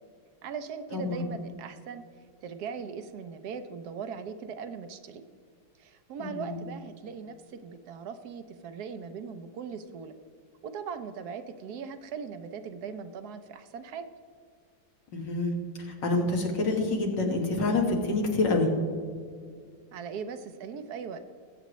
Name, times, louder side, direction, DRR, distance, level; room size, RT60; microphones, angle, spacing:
voice 1, 0.4-2.0 2.4-5.2 5.8-10.1 10.6-14.1 19.9-21.2, right 6 dB, 65° right, 10 dB, 1.2 m, -39 dB
voice 2, 0.9-1.2 6.2-6.6 15.1-18.7, left 2 dB, 80° left, 1 dB, 2.2 m, -27 dB
19.5 x 7.9 x 3.1 m, 2.1 s
omnidirectional pair, 1.9 m